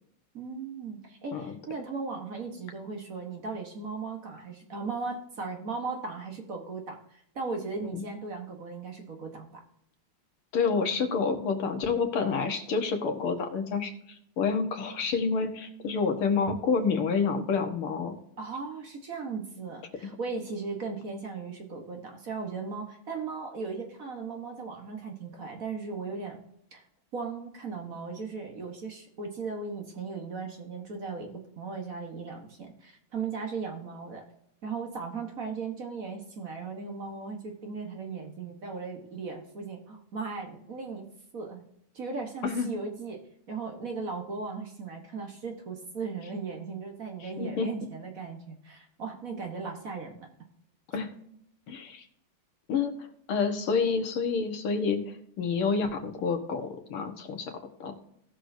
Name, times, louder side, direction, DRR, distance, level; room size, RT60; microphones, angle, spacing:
voice 1, 0.3-9.6 18.4-26.4 26.7-26.8 27.1-34.2 34.6-41.0 41.3-41.7 41.9-43.2 43.5-50.3 51.0-51.1, right 4 dB, 45° right, 3 dB, 1.5 m, -37 dB
voice 2, 10.5-18.2 42.4-42.7 47.2-47.7 50.9-51.1 51.7-52.1 52.7-53.0 53.3-57.5 57.8-58.0, left 5 dB, 85° left, 5 dB, 2.2 m, -28 dB
18.0 x 6.4 x 2.7 m, 0.74 s
omnidirectional pair, 2.3 m